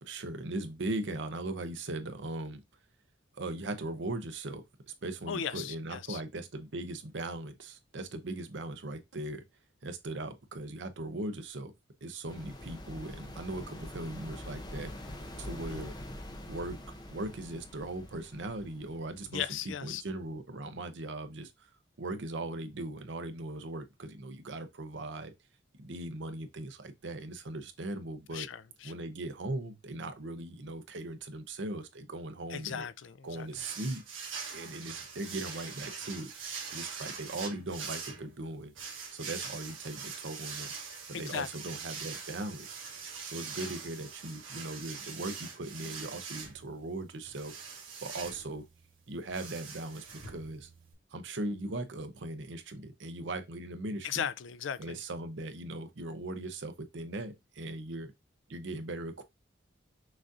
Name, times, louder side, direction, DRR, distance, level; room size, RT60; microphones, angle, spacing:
voice 1, 0.0-2.6 3.3-9.4 9.8-11.7 12.0-15.9 16.5-16.8 17.1-19.4 19.8-21.7 22.0-25.3 25.8-28.5 28.8-32.9 33.2-34.0 34.5-36.3 36.7-38.7 39.1-40.7 41.1-42.8 43.2-47.5 48.0-48.6 49.1-50.7 51.1-54.2 54.8-58.1 58.5-59.2, right 2 dB, 65° right, 0.7 m, -39 dB
voice 2, 5.3-6.2 15.7-15.9 19.3-20.0 28.3-28.9 32.5-33.5 41.1-41.5 54.0-55.0, left 8 dB, 75° left, 0.4 m, -37 dB
sound 1, 12.3-19.9, left 1 dB, 20° left, 0.6 m, -45 dB
sound 2, 33.5-50.9, right 5 dB, 85° right, 1.3 m, -43 dB
6.1 x 2.6 x 2.5 m
head